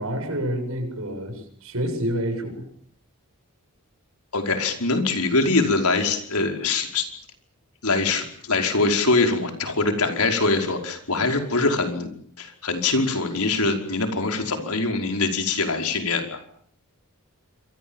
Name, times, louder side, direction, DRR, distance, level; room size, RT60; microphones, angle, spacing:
voice 1, 0.0-2.6, equal, 70° right, 6 dB, 7.9 m, -28 dB
voice 2, 4.3-7.0 7.8-12.1 12.4-16.4, left 3 dB, 85° left, 5 dB, 5.2 m, -23 dB
27.5 x 24.0 x 7.4 m, 0.62 s
head